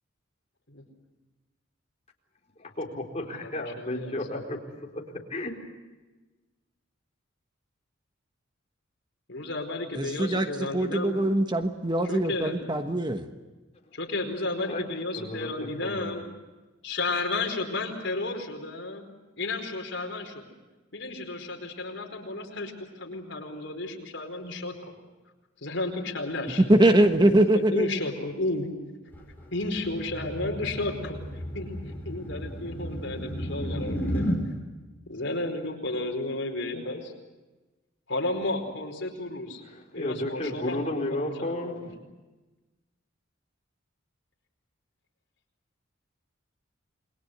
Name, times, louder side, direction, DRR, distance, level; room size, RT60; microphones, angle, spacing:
voice 1, 2.6-4.6 4.9-5.5 14.6-14.8 15.2-15.5 15.8-16.2 39.7-41.9, left 1 dB, 35° left, 1 dB, 4.3 m, -33 dB
voice 2, 3.2-4.2 9.3-11.1 12.0-12.6 13.9-16.2 16.8-19.0 19.4-20.4 20.9-24.9 25.6-26.6 27.3-28.7 29.5-31.8 32.0-34.2 35.1-37.1 38.1-39.6 39.9-41.9, left 2 dB, 65° left, 3 dB, 4.7 m, -33 dB
voice 3, 9.9-13.3 26.6-27.9, right 1 dB, 25° right, 7 dB, 1.3 m, -22 dB
sound 1, 29.1-34.4, equal, 10° left, 6.0 m, -33 dB
29.0 x 22.0 x 8.0 m, 1.2 s
head